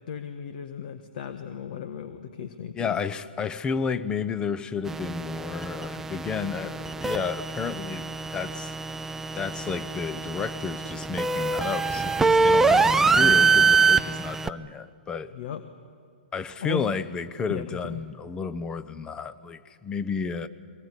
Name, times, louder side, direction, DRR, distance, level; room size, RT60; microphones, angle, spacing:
voice 1, 0.1-3.0 15.3-15.6 16.6-16.9 17.5-18.0, left 9 dB, 55° left, 9 dB, 1.4 m, -35 dB
voice 2, 2.7-8.7 9.3-15.3 16.3-20.5, left 5 dB, 15° left, 14 dB, 0.9 m, -32 dB
sound 1, 4.9-14.5, right 4 dB, 5° right, 0.5 m, -24 dB
23.0 x 20.0 x 9.9 m, 2.2 s
hypercardioid pair, 130°, 5 cm